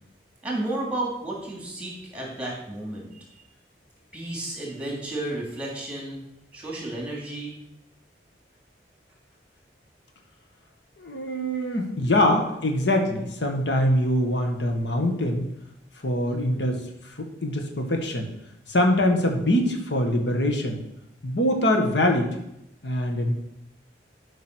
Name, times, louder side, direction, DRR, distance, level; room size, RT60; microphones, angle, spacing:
voice 1, 0.4-3.2 4.1-6.2 6.5-7.6 12.0-12.1, right 2 dB, 10° right, -2 dB, 2.9 m, -32 dB
voice 2, 11.0-15.4 16.0-18.3 18.7-20.8 21.2-22.3 22.8-23.3, left 1 dB, 80° left, 3 dB, 1.6 m, -23 dB
12.5 x 5.3 x 6.3 m, 0.81 s
head